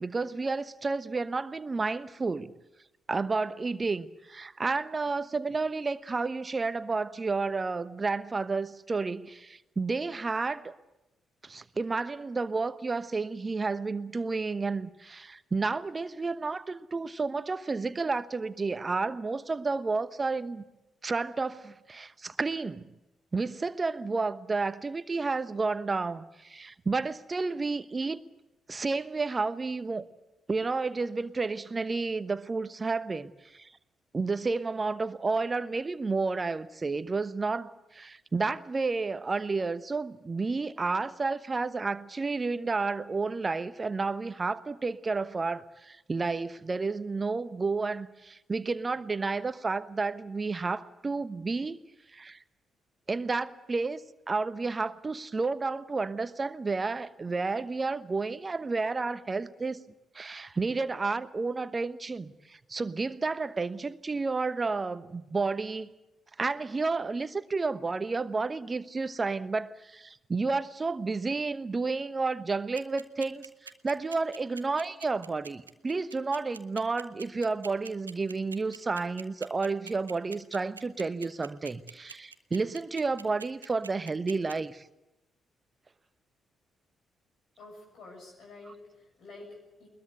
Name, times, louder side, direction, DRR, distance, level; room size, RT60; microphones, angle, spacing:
voice 1, 0.0-2.5 3.1-10.7 11.4-20.6 21.0-22.9 23.3-28.2 28.7-30.1 30.5-33.7 34.1-51.8 52.1-52.4 53.1-54.0 54.3-59.8 60.1-65.9 66.4-84.8, right 4 dB, 30° right, 1.1 m, -31 dB
sound 1, 72.8-84.5, right 5 dB, 85° right, 0.7 m, -44 dB
voice 2, 87.6-89.9, left 2 dB, 55° left, 6.8 m, -49 dB
21.5 x 21.0 x 8.1 m
figure-of-eight pair, 40°, 0 cm